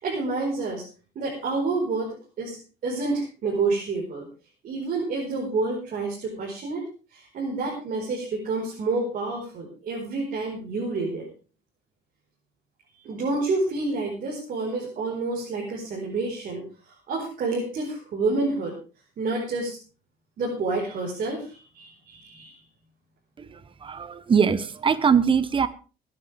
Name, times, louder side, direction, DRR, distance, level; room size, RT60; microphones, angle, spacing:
voice 1, 0.0-0.8 1.1-2.6 2.8-4.3 4.6-11.3 13.0-18.7 19.2-19.8 20.4-22.6, right 3 dB, 55° right, -3 dB, 4.8 m, -29 dB
voice 2, 23.4-25.7, right 6 dB, 30° right, 14 dB, 1.0 m, -22 dB
22.5 x 9.6 x 3.5 m, 0.35 s
cardioid pair, 110°, 17 cm